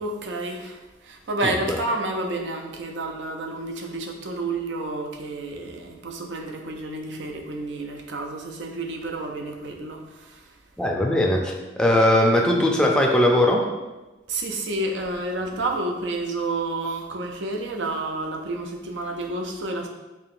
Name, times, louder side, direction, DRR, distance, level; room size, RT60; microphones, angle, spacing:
voice 1, 0.0-10.5 14.3-19.9, right 2 dB, 80° right, 3 dB, 0.5 m, -30 dB
voice 2, 1.4-1.8 10.8-13.7, left 1 dB, 5° left, -1 dB, 0.4 m, -20 dB
4.7 x 2.8 x 2.5 m, 1.1 s
head